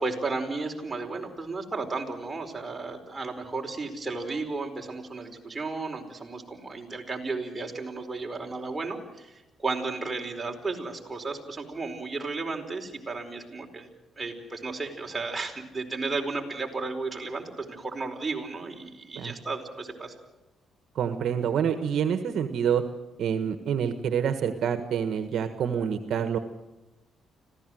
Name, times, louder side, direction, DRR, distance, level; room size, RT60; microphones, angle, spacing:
voice 1, 0.0-13.9 14.2-20.1, right 3 dB, 20° right, 1 dB, 4.7 m, -34 dB
voice 2, 20.9-22.8 23.2-26.4, right 8 dB, 70° right, 9 dB, 1.5 m, -27 dB
26.0 x 16.5 x 7.8 m, 1.0 s
cardioid pair, 90°, 0 cm